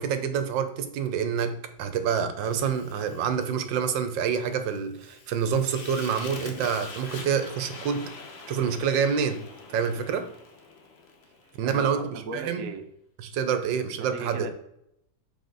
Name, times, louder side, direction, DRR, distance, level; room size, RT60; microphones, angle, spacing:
voice 1, 0.0-8.1 8.5-9.4 9.7-10.3 11.6-12.6 13.2-14.4, right 7 dB, 70° right, 9 dB, 1.4 m, -27 dB
Fire, 2.4-11.6, left 3 dB, 45° left, 0.9 m, -44 dB
voice 2, 11.6-12.8 14.0-14.5, right 4 dB, 55° right, 4 dB, 1.1 m, -37 dB
6.7 x 5.0 x 3.9 m, 0.77 s
omnidirectional pair, 2.2 m